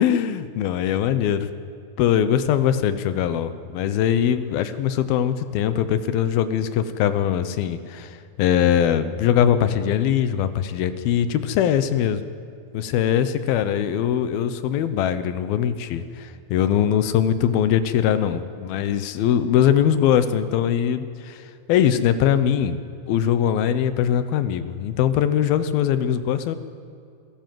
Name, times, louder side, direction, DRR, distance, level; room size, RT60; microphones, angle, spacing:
voice 1, 0.0-1.5 2.0-12.2 12.7-22.8 23.1-26.6, left 9 dB, 80° left, 12 dB, 2.9 m, -21 dB
26.0 x 17.5 x 7.7 m, 2.5 s
omnidirectional pair, 4.3 m